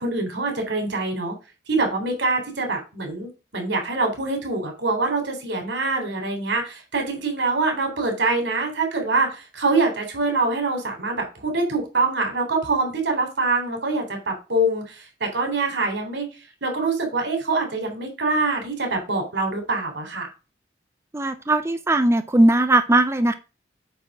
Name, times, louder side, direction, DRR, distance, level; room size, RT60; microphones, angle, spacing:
voice 1, 0.0-1.3 1.7-16.3 16.6-20.3, right 3 dB, 85° right, 3 dB, 3.3 m, -24 dB
voice 2, 21.1-23.3, right 1 dB, 15° right, 8 dB, 0.5 m, -19 dB
8.3 x 3.6 x 6.1 m, 0.30 s
head